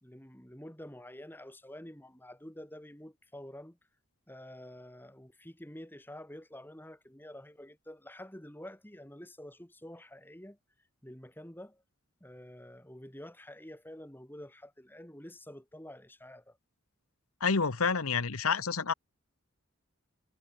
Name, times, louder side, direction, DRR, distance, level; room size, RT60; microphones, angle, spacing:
voice 1, 0.0-3.8 4.3-10.6 11.0-11.8 12.2-16.6, left 1 dB, 10° left, 2.7 m, -48 dB
voice 2, 17.4-18.9, left 5 dB, 80° left, 1.2 m, -28 dB
head